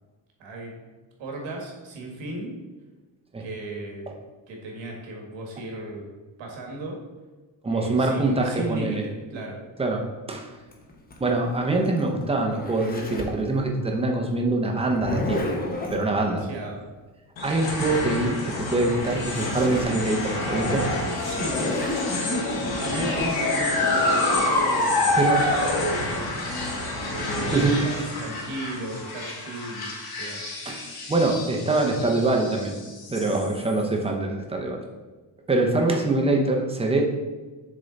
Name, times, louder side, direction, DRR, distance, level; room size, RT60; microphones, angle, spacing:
voice 1, 0.4-0.9 1.2-2.5 3.4-4.2 4.5-7.0 7.7-9.6 16.1-16.8 21.2-21.7 22.1-22.4 22.8-25.2 27.1-30.4, right 2 dB, 80° right, 0 dB, 1.7 m, -35 dB
voice 2, 7.6-9.0 9.8-10.5 11.2-15.6 15.9-16.4 17.4-20.9 25.1-25.6 27.5-27.8 30.7-30.8 31.1-32.8 33.1-34.8 35.5-37.1, right 2 dB, 15° right, 1 dB, 0.6 m, -24 dB
Zipper (clothing), 10.7-13.4 14.8-16.0 18.6-18.7 18.9-19.9 20.4-20.5 21.3-23.3, left 2 dB, 20° left, 0.7 m, -31 dB
sound 1, 17.4-33.8, left 2 dB, 55° left, 1.2 m, -27 dB
6.7 x 3.7 x 4.0 m, 1.2 s
cardioid pair, 165°, 45 cm